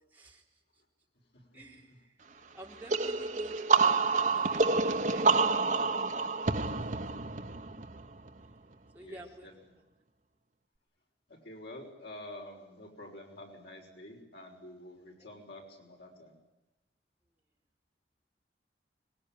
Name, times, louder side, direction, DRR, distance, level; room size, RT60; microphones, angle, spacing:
voice 1, 0.1-0.5 0.7-0.8 1.5-2.2 2.5-3.6 3.8-5.6 6.1-6.6 8.9-9.5 9.8-9.9 15.2-15.3, right 1 dB, 10° right, -2 dB, 4.1 m, -49 dB
sound 1, 2.9-8.5, right 4 dB, 45° right, 1.1 m, -28 dB
voice 2, 9.0-9.5 11.4-16.4, left 1 dB, 75° left, 1 dB, 6.2 m, -48 dB
25.0 x 22.0 x 9.3 m, 1.0 s
head